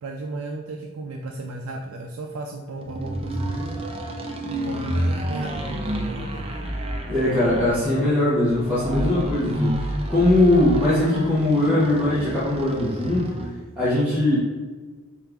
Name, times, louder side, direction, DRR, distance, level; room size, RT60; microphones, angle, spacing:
voice 1, 0.0-3.8 4.5-6.5, right 2 dB, 85° right, 1 dB, 0.4 m, -35 dB
sound 1, 2.8-13.6, right 1 dB, 25° right, 0.5 m, -29 dB
voice 2, 7.1-13.3 13.8-14.4, left 1 dB, 10° right, -11 dB, 0.9 m, -21 dB
4.5 x 2.4 x 3.4 m, 1.4 s
head